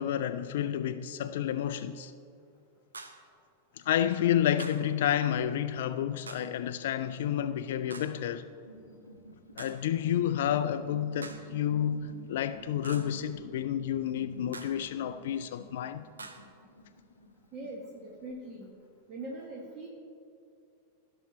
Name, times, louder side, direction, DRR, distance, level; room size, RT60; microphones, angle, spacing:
voice 1, 0.0-2.1 3.8-8.5 9.6-16.0, left 10 dB, 55° left, 0.3 m, -30 dB
sound 1, 2.9-3.3 4.6-5.0 6.3-6.6 7.9-8.3 9.6-9.9 11.2-11.6 12.8-13.2 14.5-14.9 16.2-16.5, right 3 dB, 75° right, 0.7 m, -46 dB
sound 2, 8.3-18.3, left 1 dB, 80° left, 0.8 m, -52 dB
voice 2, 17.5-18.8 19.1-19.9, right 2 dB, 35° right, 1.3 m, -42 dB
15.5 x 6.2 x 4.2 m
figure-of-eight pair, 90°, 0 cm